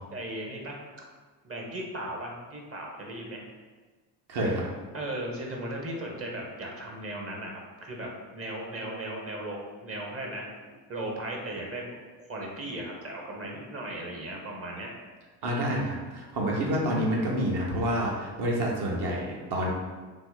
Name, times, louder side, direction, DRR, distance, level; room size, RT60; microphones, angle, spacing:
voice 1, 0.1-0.8 1.4-3.5 4.9-11.8 12.3-14.9, right 1 dB, 30° right, -1 dB, 0.8 m, -37 dB
voice 2, 4.3-4.6 15.4-19.7, equal, 50° right, -2 dB, 1.0 m, -28 dB
2.9 x 2.1 x 3.8 m, 1.4 s
hypercardioid pair, 60°, 49 cm